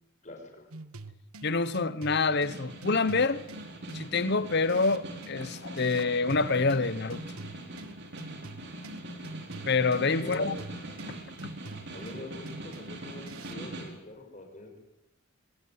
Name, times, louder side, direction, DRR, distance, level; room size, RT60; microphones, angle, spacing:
voice 1, 0.2-0.7 10.1-10.5 11.9-14.8, left 2 dB, 35° left, 6.4 m, -44 dB
sound 1, 0.7-13.7, right 2 dB, 75° right, 1.3 m, -46 dB
voice 2, 1.4-3.4 3.9-7.2 9.7-10.6, left 4 dB, 50° left, 1.0 m, -27 dB
Snare drum, 2.2-14.0, right 1 dB, 50° right, 4.6 m, -42 dB
25.0 x 18.5 x 9.7 m
head